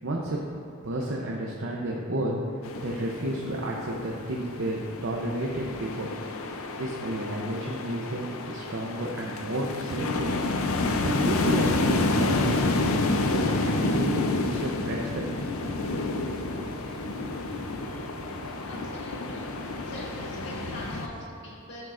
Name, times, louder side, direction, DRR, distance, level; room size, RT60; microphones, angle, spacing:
voice 1, 0.0-0.4 0.8-2.3 2.8-6.1 6.8-10.3 10.8-13.0 13.3-15.3, right 1 dB, 65° right, -2 dB, 0.7 m, -31 dB
sound 1, 2.6-21.1, left 2 dB, 85° left, 0.6 m, -29 dB
sound 2, 14.4-21.3, right 2 dB, 25° right, 0.3 m, -44 dB
voice 2, 18.6-19.6 19.9-21.9, left 1 dB, 60° left, -5 dB, 1.8 m, -43 dB
12.0 x 6.5 x 2.5 m, 2.6 s
head